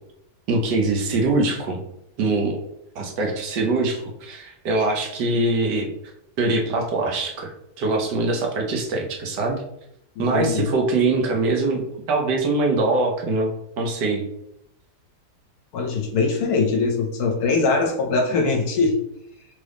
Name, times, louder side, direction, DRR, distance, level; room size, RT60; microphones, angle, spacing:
voice 1, 0.5-1.8 2.2-2.6 2.9-5.9 6.4-9.6 10.2-11.8 12.1-14.2, right 3 dB, 75° right, 1 dB, 1.4 m, -23 dB
voice 2, 10.2-10.7 15.7-19.0, left 4 dB, 70° left, 2 dB, 1.1 m, -22 dB
3.7 x 3.6 x 3.4 m, 0.80 s
omnidirectional pair, 1.8 m